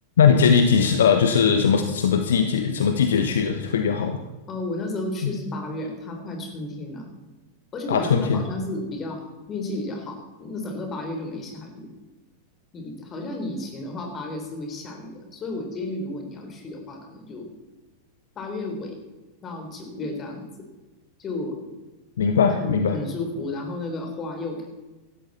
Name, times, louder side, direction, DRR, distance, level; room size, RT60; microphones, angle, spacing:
voice 1, 0.2-4.2 5.2-5.3 7.9-8.4 22.2-23.0, left 6 dB, 65° left, 7 dB, 1.0 m, -20 dB
voice 2, 4.5-7.0 7.7-11.9 12.7-17.5 18.4-19.0 19.4-20.4 21.2-21.6 22.6-24.7, left 2 dB, 25° left, 3 dB, 3.8 m, -33 dB
17.5 x 13.0 x 4.3 m, 1.2 s
figure-of-eight pair, 90°, 0 cm